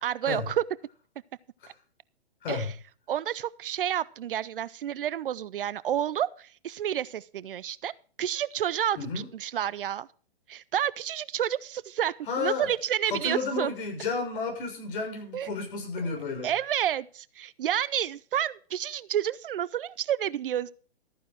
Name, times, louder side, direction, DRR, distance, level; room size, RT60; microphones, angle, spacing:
voice 1, 0.0-0.6 2.5-2.7 3.1-7.9 8.2-10.1 10.5-13.7 15.3-15.5 16.0-16.1 16.4-20.7, right 10 dB, 60° right, 20 dB, 0.6 m, -30 dB
voice 2, 9.0-9.3 12.3-12.7 13.1-16.5, left 4 dB, 55° left, 2 dB, 6.6 m, -32 dB
14.0 x 9.3 x 4.6 m, 0.40 s
hypercardioid pair, 125°, 32 cm